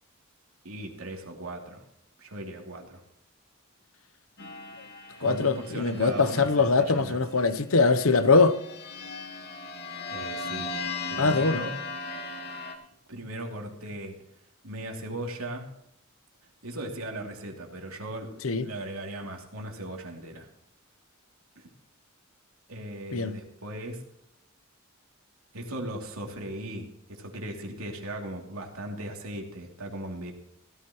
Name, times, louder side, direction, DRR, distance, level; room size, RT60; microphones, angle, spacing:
voice 1, 0.6-1.8 2.2-3.0 5.2-7.2 10.1-10.8 11.1-11.8 13.1-14.2 14.6-15.7 16.6-20.5 21.5-21.7 22.7-24.0 25.5-30.3, right 1 dB, 85° right, 3.0 m, -38 dB
sound 1, 4.4-7.1 7.9-12.8, left 3 dB, 50° left, 2.1 m, -38 dB
voice 2, 5.2-8.6 11.2-11.6 18.4-18.7 23.1-23.3, left 4 dB, 70° left, 0.9 m, -22 dB
16.0 x 14.0 x 3.1 m
head